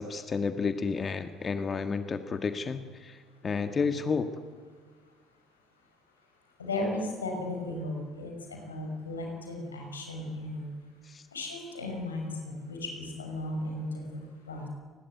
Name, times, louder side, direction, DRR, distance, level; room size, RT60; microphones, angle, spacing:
voice 1, 0.0-4.3 11.0-11.3, left 5 dB, 35° left, 9 dB, 1.7 m, -31 dB
voice 2, 6.6-10.7 11.3-14.1 14.5-14.7, left 2 dB, 90° left, 2 dB, 5.6 m, -35 dB
28.5 x 20.5 x 9.5 m, 1.5 s
hypercardioid pair, 55°, 0 cm